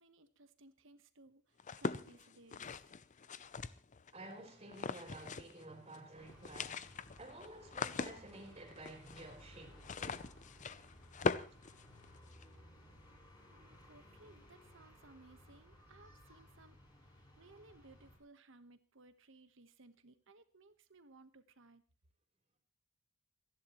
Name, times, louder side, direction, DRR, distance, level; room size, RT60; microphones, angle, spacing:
voice 1, 0.0-2.7 13.5-21.8, right 2 dB, 70° right, 1.4 m, -62 dB
sound 1, 1.6-4.1 4.7-5.6 5.9-6.0 6.3-12.4, left 4 dB, 40° left, 0.6 m, -41 dB
voice 2, 4.1-10.3, right 2 dB, 30° right, 3.8 m, -52 dB
sound 2, 6.2-18.2, left 1 dB, 20° left, 6.7 m, -60 dB
29.0 x 11.0 x 3.1 m
head